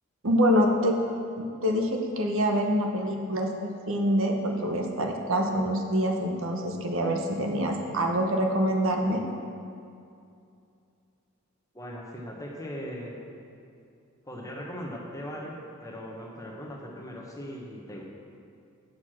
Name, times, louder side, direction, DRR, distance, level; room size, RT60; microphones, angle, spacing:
voice 1, 0.2-1.0 1.4-9.2, equal, 65° right, 2 dB, 0.9 m, -26 dB
voice 2, 11.7-13.2 14.3-18.0, equal, 15° left, -1 dB, 1.0 m, -39 dB
8.0 x 6.5 x 6.0 m, 2.5 s
head